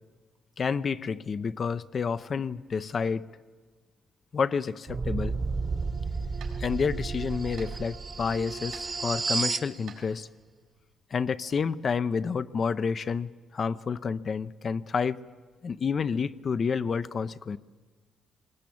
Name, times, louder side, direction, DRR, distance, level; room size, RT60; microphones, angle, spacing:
voice 1, 0.6-3.3 4.3-5.4 6.6-10.3 11.1-15.2 15.6-17.6, left 5 dB, 45° left, 12 dB, 0.6 m, -29 dB
sound 1, 4.9-9.7, right 4 dB, 35° right, 1.2 m, -32 dB
sound 2, 5.7-10.9, right 7 dB, 80° right, 4.3 m, -54 dB
20.0 x 19.0 x 8.6 m, 1.4 s
cardioid pair, 90°, 0 cm